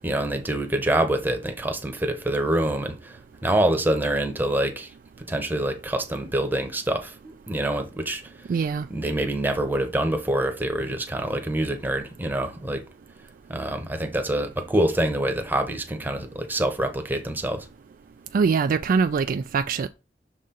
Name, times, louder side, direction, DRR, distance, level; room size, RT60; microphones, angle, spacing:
voice 1, 0.0-4.9 5.3-8.2 8.9-12.8 13.5-17.7, right 1 dB, 10° right, 0.9 m, -26 dB
voice 2, 8.5-8.9 18.3-19.9, right 5 dB, 50° right, 0.3 m, -23 dB
6.3 x 4.2 x 3.8 m
head